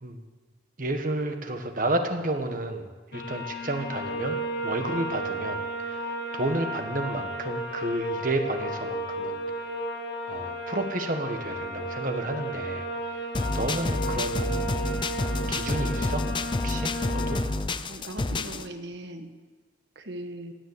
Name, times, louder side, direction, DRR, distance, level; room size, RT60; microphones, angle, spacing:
voice 1, 0.8-2.9 3.1-5.6 5.9-6.0 6.3-9.4 10.2-12.8 13.5-14.6 15.5-16.2 16.5-17.4, right 2 dB, 45° right, 6 dB, 1.5 m, -31 dB
sound 1, 3.1-17.4, right 1 dB, 65° left, 2.3 m, -33 dB
sound 2, 13.3-18.6, left 2 dB, 25° left, 0.5 m, -29 dB
voice 2, 17.9-19.3 19.9-20.5, right 1 dB, 70° right, 7 dB, 1.5 m, -39 dB
17.0 x 9.8 x 8.1 m, 1.3 s
head